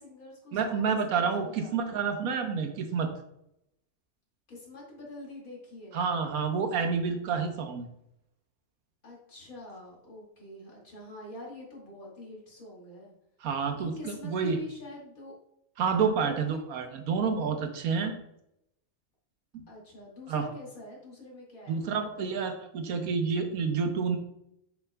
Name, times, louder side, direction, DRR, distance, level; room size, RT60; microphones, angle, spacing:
voice 1, 0.0-2.0 4.5-6.0 9.0-13.1 13.8-15.3 16.2-16.7 19.7-22.5, left 2 dB, 80° left, -4 dB, 2.6 m, -46 dB
voice 2, 0.5-3.1 5.9-7.9 13.4-14.6 15.8-18.1 19.5-19.6 20.3-20.5 21.7-24.2, right 5 dB, 85° right, 6 dB, 1.3 m, -29 dB
7.4 x 5.9 x 2.2 m, 0.79 s
omnidirectional pair, 1.5 m